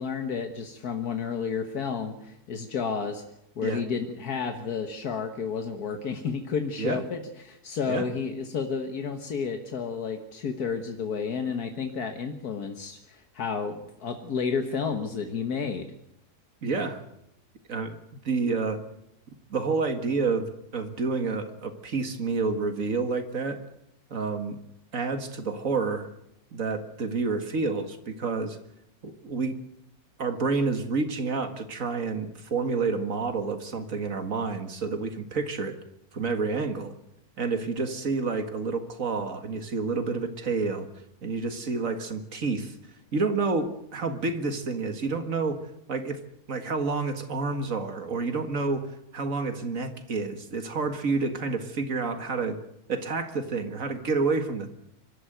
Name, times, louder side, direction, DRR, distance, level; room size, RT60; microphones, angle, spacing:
voice 1, 0.0-3.2 3.6-15.9, left 6 dB, 75° left, 5 dB, 1.9 m, -31 dB
voice 2, 16.6-17.0 17.7-18.0 18.2-18.8 19.5-23.6 24.1-24.6 24.9-26.1 26.5-28.6 29.0-29.6 30.2-35.8 36.1-36.9 37.4-40.9 41.2-42.7 43.1-45.6 45.9-46.2 46.5-48.9 49.1-52.6 52.9-54.7, right 4 dB, 60° right, 8 dB, 2.1 m, -29 dB
24.5 x 13.0 x 9.2 m, 0.81 s
omnidirectional pair, 1.6 m